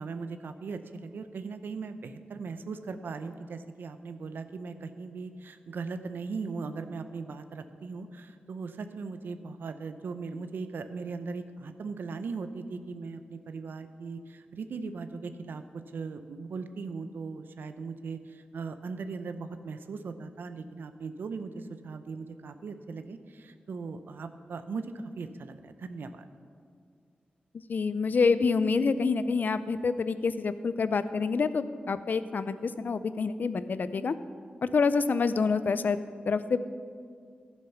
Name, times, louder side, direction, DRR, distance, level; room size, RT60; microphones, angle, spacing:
voice 1, 0.0-15.6 15.9-26.3, right 4 dB, 85° right, 9 dB, 0.6 m, -39 dB
voice 2, 27.7-34.1 34.6-36.0 36.3-36.6, left 4 dB, 60° left, 13 dB, 0.5 m, -27 dB
12.0 x 7.4 x 5.8 m, 2.2 s
wide cardioid pair, 85°, 3 cm